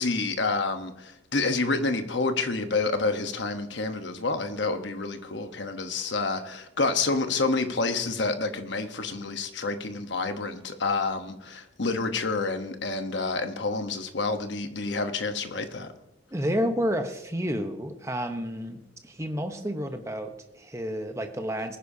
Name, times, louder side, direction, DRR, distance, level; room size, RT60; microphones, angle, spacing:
voice 1, 0.0-15.9, left 3 dB, 60° left, 1.0 m, -28 dB
voice 2, 16.3-21.8, equal, 15° right, 0.9 m, -30 dB
20.5 x 10.0 x 2.8 m
head